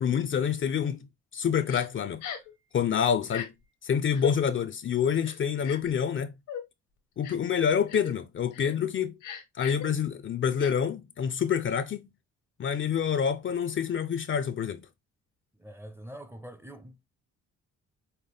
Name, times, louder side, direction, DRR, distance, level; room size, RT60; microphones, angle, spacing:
voice 1, 0.0-1.1 1.3-2.2 2.7-3.5 3.8-6.3 7.2-9.2 9.6-12.1 12.6-14.9, left 7 dB, 40° left, 0.5 m, -27 dB
Crying sobbing, 1.7-1.9 2.2-2.5 3.2-3.5 4.1-4.3 5.2-5.9 6.5-6.6 7.2-7.5 7.9-8.1 8.5-8.7 9.2-9.9 10.6-10.7, left 8 dB, 85° left, 1.2 m, -38 dB
voice 2, 15.6-17.1, right 1 dB, 10° right, 0.6 m, -45 dB
5.6 x 2.1 x 3.3 m
cardioid pair, 90°, 30 cm